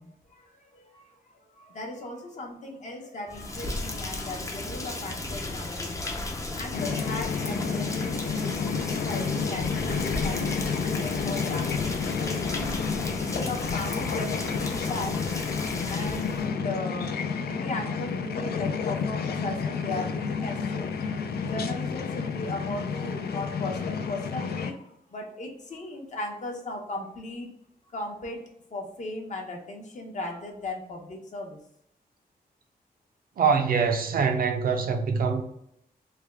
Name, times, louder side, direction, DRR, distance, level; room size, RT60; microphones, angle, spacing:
voice 1, 0.0-6.0 6.5-12.6 13.1-15.2 15.9-17.1 17.4-27.5 27.9-31.6, left 2 dB, 50° left, 0.8 m, -37 dB
Rain, 3.3-16.4, left 2 dB, 20° left, 0.5 m, -35 dB
sound 1, 6.7-24.7, left 5 dB, 90° left, 0.4 m, -30 dB
voice 2, 33.4-35.4, right 5 dB, 65° right, 0.5 m, -24 dB
3.3 x 2.3 x 3.4 m
wide cardioid pair, 155°, 16 cm